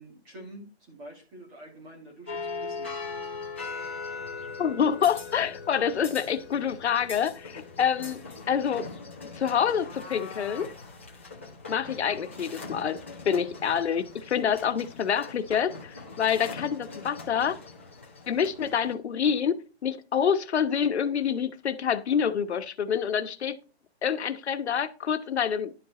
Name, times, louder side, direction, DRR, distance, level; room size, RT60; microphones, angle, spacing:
voice 1, 0.0-2.9, right 1 dB, 15° right, 2.4 m, -47 dB
sound 1, 2.3-18.9, left 4 dB, 10° left, 0.4 m, -41 dB
voice 2, 4.6-8.2 8.5-8.9 9.4-10.7 11.7-17.6 18.3-19.6 19.8-23.6 24.0-25.7, left 7 dB, 85° left, 1.1 m, -27 dB
10.5 x 5.2 x 4.2 m
hypercardioid pair, 175°, 32 cm